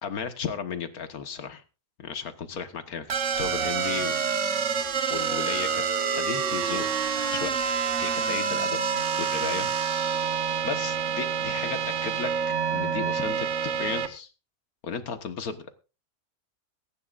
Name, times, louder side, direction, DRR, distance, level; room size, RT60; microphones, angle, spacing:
voice 1, 0.0-1.6 2.0-4.2 5.1-5.8 6.1-6.9 7.3-7.7 8.0-8.8 9.2-10.1 10.6-12.3 12.7-14.3 14.8-15.7, left 6 dB, 75° left, 9 dB, 1.8 m, -34 dB
sound 1, 3.1-14.1, right 6 dB, 55° right, 1.5 m, -27 dB
23.0 x 11.0 x 2.5 m, 0.31 s
omnidirectional pair, 1.6 m